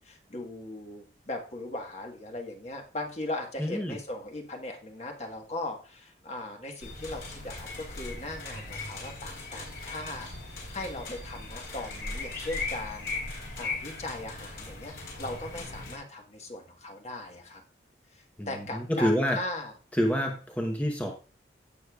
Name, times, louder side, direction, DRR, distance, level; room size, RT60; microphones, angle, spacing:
voice 1, 0.0-17.6 18.1-19.7, left 2 dB, 40° left, 2 dB, 1.5 m, -39 dB
voice 2, 3.6-4.0 18.4-19.4 19.9-21.1, equal, 10° left, 1 dB, 1.0 m, -27 dB
sound 1, 6.8-16.0, left 3 dB, 60° left, 4.3 m, -38 dB
16.0 x 6.5 x 2.4 m, 0.35 s
head